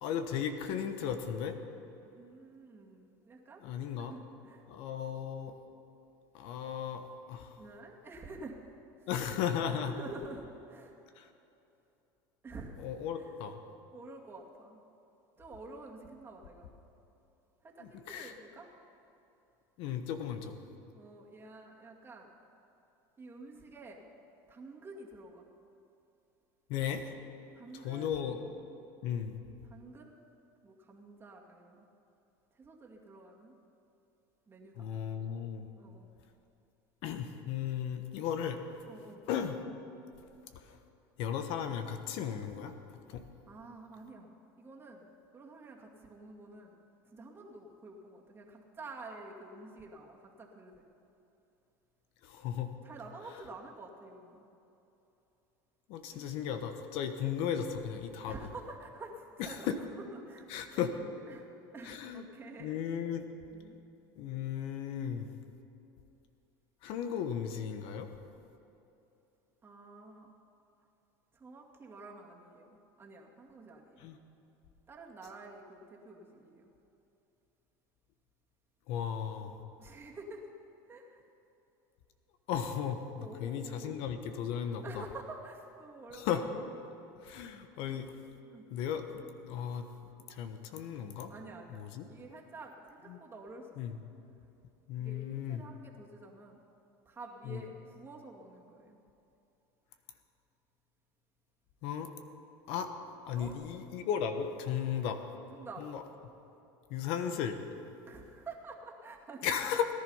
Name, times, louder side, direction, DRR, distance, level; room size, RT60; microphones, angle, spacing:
voice 1, 0.0-1.5 3.6-4.1 4.7-5.5 6.3-7.6 9.1-9.9 11.2-11.3 12.8-13.6 17.8-18.3 19.8-20.6 26.7-27.0 27.7-28.4 29.0-29.4 34.8-35.7 37.0-38.6 39.3-39.6 41.2-42.7 43.1-43.2 52.2-52.7 55.9-58.3 59.4-59.7 60.5-61.0 61.8-62.2 62.6-63.3 64.2-65.3 66.8-68.1 74.0-74.2 78.9-79.5 82.5-85.0 86.1-86.4 87.2-88.1 88.7-89.9 90.3-91.3 91.7-92.0 93.1-93.2 93.8-94.0 94.9-95.6 97.5-97.6 101.8-102.1 102.7-102.9 103.3-105.2 105.8-106.0 106.9-107.6 109.4-109.9, left 8 dB, 65° left, 8 dB, 1.1 m, -35 dB
voice 2, 2.0-3.6 4.0-4.6 7.6-8.6 9.7-11.0 12.4-12.9 13.1-13.4 13.9-14.8 15.4-16.7 17.6-18.7 20.9-22.4 23.2-24.1 24.5-25.5 27.5-28.4 29.6-30.2 30.6-31.9 32.6-33.6 34.5-34.9 35.8-36.1 38.9-39.2 43.5-44.3 44.6-45.1 45.3-46.8 47.1-50.9 52.8-54.5 56.1-56.3 58.3-60.9 61.3-61.5 61.7-62.8 63.5-63.8 69.6-70.3 71.3-74.1 74.9-76.7 79.8-80.5 80.9-81.2 83.2-84.0 84.8-86.5 88.5-88.7 91.3-93.7 93.9-94.0 95.0-96.6 97.1-99.0 103.3-103.6 105.5-105.9 108.0-109.5, right 2 dB, 25° right, -1 dB, 2.2 m, -49 dB
18.0 x 11.0 x 5.6 m, 2.9 s
supercardioid pair, 110°, 10 cm